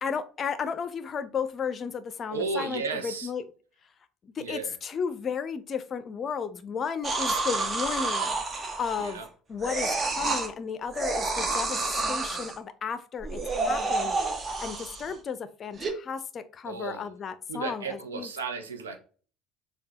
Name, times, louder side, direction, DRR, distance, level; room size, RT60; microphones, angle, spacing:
voice 1, 0.0-3.5 4.2-8.4 8.8-9.2 9.5-18.3, left 6 dB, 40° left, 12 dB, 0.5 m, -34 dB
voice 2, 2.3-3.3 4.4-4.7 7.5-7.6 9.0-9.3 15.0-15.2 16.7-17.1 17.5-19.0, right 4 dB, 80° right, 6 dB, 0.6 m, -34 dB
sound 1, 7.0-9.3 9.6-10.5 10.9-12.6 13.2-15.1 15.8-15.9, right 3 dB, 30° right, 0.8 m, -29 dB
6.5 x 2.3 x 2.8 m, 0.39 s
figure-of-eight pair, 60°, 0 cm